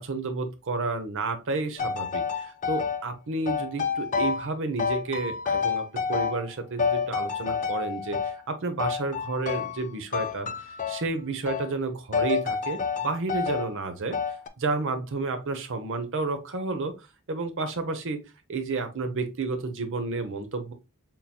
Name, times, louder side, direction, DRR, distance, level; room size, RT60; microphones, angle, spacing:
voice 1, 0.0-14.2 14.6-18.2 18.5-20.7, right 3 dB, 60° right, 0.7 m, -31 dB
sound 1, 1.8-3.0 3.5-4.5 4.8-6.5 6.8-8.4 8.8-9.8 10.1-11.1 11.5-11.7 12.1-13.7 14.1-14.5, left 6 dB, 35° left, 0.4 m, -29 dB
4.2 x 3.8 x 2.2 m
head